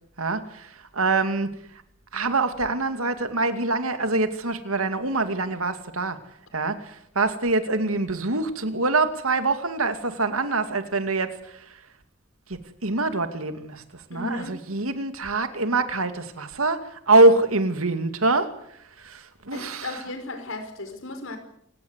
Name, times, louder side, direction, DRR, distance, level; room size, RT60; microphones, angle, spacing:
voice 1, 0.2-1.5 2.1-6.2 6.5-11.8 12.5-18.5 19.0-20.0, right 3 dB, 80° right, 9 dB, 2.4 m, -24 dB
voice 2, 14.1-14.6 19.5-21.4, left 2 dB, 65° left, 7 dB, 5.3 m, -35 dB
28.0 x 17.5 x 8.2 m, 0.74 s
head